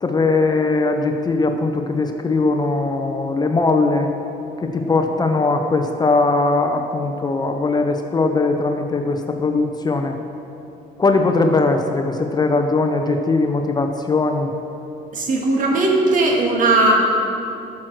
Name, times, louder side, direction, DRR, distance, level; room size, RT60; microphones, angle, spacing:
voice 1, 0.0-4.1 4.6-10.1 11.0-14.5, left 3 dB, 25° left, 5 dB, 0.8 m, -20 dB
voice 2, 15.1-17.0, right 2 dB, 50° right, 0 dB, 2.0 m, -17 dB
13.0 x 6.3 x 6.3 m, 2.8 s
cardioid pair, 110°, 17 cm